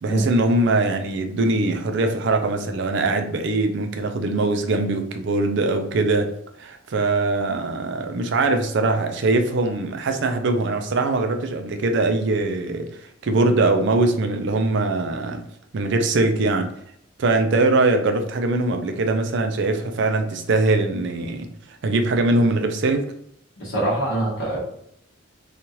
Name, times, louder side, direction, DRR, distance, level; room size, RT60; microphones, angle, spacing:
voice 1, 0.0-6.3 6.6-12.9 13.2-15.4 15.7-16.7 17.2-21.5 21.8-23.1, right 2 dB, 55° right, 6 dB, 0.4 m, -22 dB
voice 2, 23.6-24.6, right 1 dB, 60° left, -7 dB, 0.9 m, -24 dB
3.0 x 2.4 x 2.8 m, 0.72 s
head